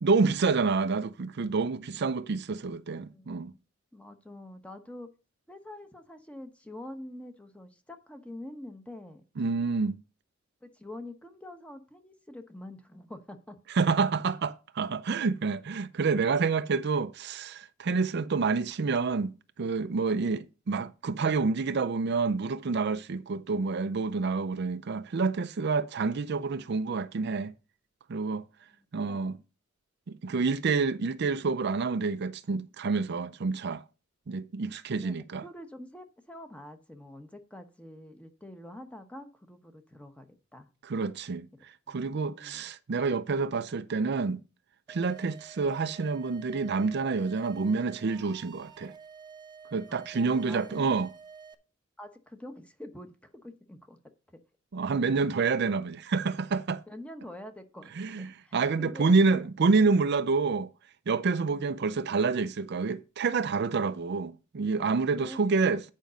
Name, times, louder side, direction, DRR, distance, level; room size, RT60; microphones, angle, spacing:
voice 1, 0.0-3.5 9.4-10.0 13.7-27.5 28.1-28.4 28.9-29.4 30.1-33.8 34.3-35.4 40.8-44.4 44.9-48.9 49.7-51.1 54.7-56.8 58.0-58.3 58.5-60.7 61.1-65.8, right 4 dB, 55° right, 0.5 m, -28 dB
voice 2, 3.1-3.6 3.9-5.1 5.5-9.2 10.6-13.6 28.7-29.3 35.0-40.7 41.9-42.0 42.3-42.7 49.9-50.9 52.0-53.1 53.4-54.0 56.9-59.5 61.5-61.8 65.2-65.6, left 1 dB, 5° left, 1.0 m, -46 dB
sound 1, 44.9-51.5, right 6 dB, 20° right, 0.7 m, -50 dB
9.3 x 5.2 x 5.1 m
head